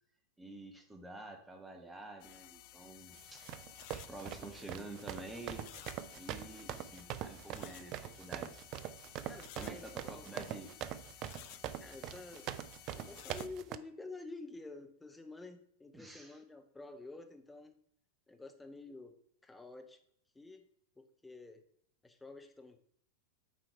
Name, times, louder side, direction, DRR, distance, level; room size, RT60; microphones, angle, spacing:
voice 1, 0.4-3.4 3.9-5.7 6.1-8.5 9.6-10.7 15.9-16.3, right 2 dB, 10° right, 3 dB, 1.4 m, -49 dB
sound 1, 2.2-13.5, left 15 dB, 45° left, 0.4 m, -55 dB
sound 2, 3.2-13.8, right 11 dB, 40° right, 0.4 m, -43 dB
voice 2, 9.3-10.4 11.8-12.5 12.9-17.7 18.3-19.2 19.4-20.0 20.3-20.7 21.0-21.6 22.0-22.8, left 3 dB, 10° left, 6 dB, 0.9 m, -50 dB
7.4 x 4.5 x 4.6 m, 0.65 s
figure-of-eight pair, 90°, 0 cm